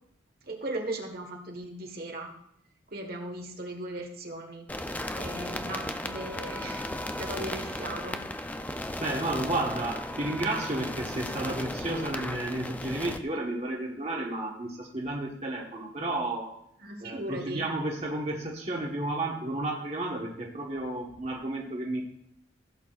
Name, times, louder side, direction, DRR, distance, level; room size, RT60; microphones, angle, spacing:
voice 1, 0.4-2.3 2.9-4.7 5.1-6.8 7.2-8.2 16.8-17.6, right 1 dB, 50° right, 2 dB, 1.4 m, -37 dB
sound 1, 4.7-13.2, left 1 dB, 10° left, 0.4 m, -35 dB
voice 2, 9.0-16.5 17.0-22.0, right 2 dB, 35° right, -1 dB, 1.3 m, -32 dB
16.0 x 8.4 x 2.4 m, 0.74 s
head